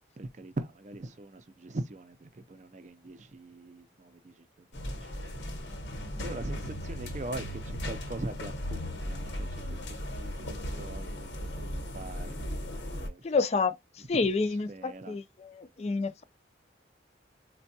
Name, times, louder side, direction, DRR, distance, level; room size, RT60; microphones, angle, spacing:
voice 1, 0.2-4.5 4.9-5.1 6.2-13.4 14.0-15.2 15.8-16.0, right 2 dB, 40° right, 0.5 m, -42 dB
sound 1, 4.7-13.1, equal, 80° left, 1.0 m, -37 dB
voice 2, 13.2-13.7 14.1-16.2, left 4 dB, 35° left, 0.3 m, -29 dB
4.3 x 2.2 x 2.7 m
head